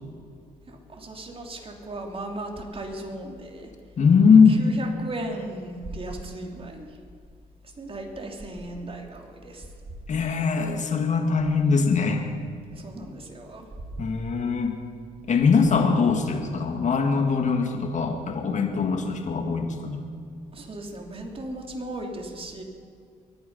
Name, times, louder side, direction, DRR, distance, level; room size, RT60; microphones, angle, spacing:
voice 1, 0.7-3.7 4.5-7.0 7.6-9.7 12.7-13.9 20.5-22.6, right 1 dB, 40° right, 2 dB, 3.1 m, -37 dB
voice 2, 4.0-4.6 10.1-12.3 14.0-14.8 15.3-20.0, left 5 dB, 55° left, 4 dB, 2.1 m, -21 dB
24.0 x 9.4 x 5.6 m, 2.2 s
cardioid pair, 70°, 15 cm